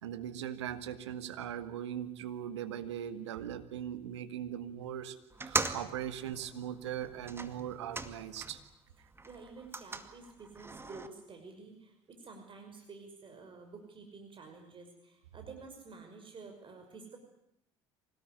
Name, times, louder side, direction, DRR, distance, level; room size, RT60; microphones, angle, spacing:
voice 1, 0.0-8.6, right 10 dB, 80° right, 9 dB, 1.9 m, -40 dB
sound 1, 5.3-8.7 9.1-11.1, right 3 dB, 15° right, 2.2 m, -40 dB
voice 2, 9.2-17.2, right 4 dB, 35° right, 4 dB, 5.8 m, -50 dB
25.5 x 19.0 x 9.7 m, 0.80 s
hypercardioid pair, 65°, 14 cm